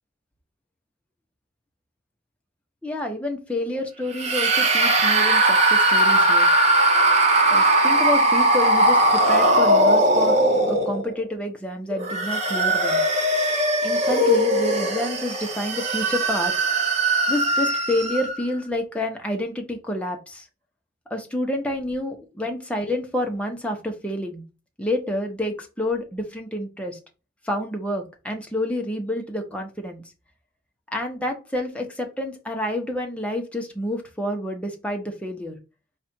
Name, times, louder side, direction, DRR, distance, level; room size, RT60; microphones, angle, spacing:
voice 1, 2.8-6.5 7.5-10.4 10.7-13.0 13.8-16.5 17.3-20.5 21.1-24.4 24.8-27.0 27.4-30.0 30.9-35.6, left 1 dB, 5° left, 2 dB, 0.8 m, -29 dB
sound 1, 4.1-11.2 11.9-18.4, right 1 dB, 35° right, 0.9 m, -19 dB
4.8 x 2.4 x 4.3 m, 0.31 s
head